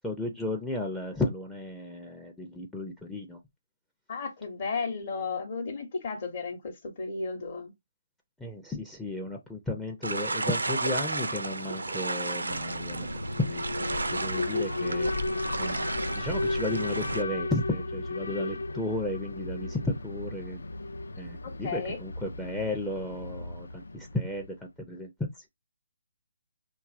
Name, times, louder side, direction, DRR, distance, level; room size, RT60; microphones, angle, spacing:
voice 1, 0.0-3.4 8.4-13.1 13.4-13.7 13.9-15.1 15.6-15.8 16.2-20.6 21.2-25.1 25.4-25.5, left 2 dB, 5° left, 0.4 m, -34 dB
voice 2, 4.1-6.6 6.8-7.7 21.4-22.0, left 4 dB, 45° left, 0.8 m, -34 dB
sound 1, 10.0-17.2, right 2 dB, 80° right, 0.4 m, -33 dB
Alarm, 12.5-24.5, left 2 dB, 75° left, 0.3 m, -34 dB
2.7 x 2.3 x 2.4 m
figure-of-eight pair, 145°, 0 cm